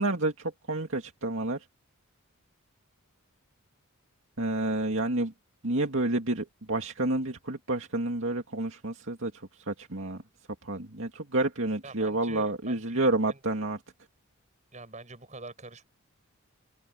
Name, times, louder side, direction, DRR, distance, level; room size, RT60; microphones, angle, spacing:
voice 1, 0.0-1.6 4.4-5.3 5.6-10.2 10.6-13.8, right 2 dB, 60° right, 2.5 m, -29 dB
voice 2, 11.8-13.4 14.7-15.8, right 3 dB, 30° right, 7.1 m, -45 dB
head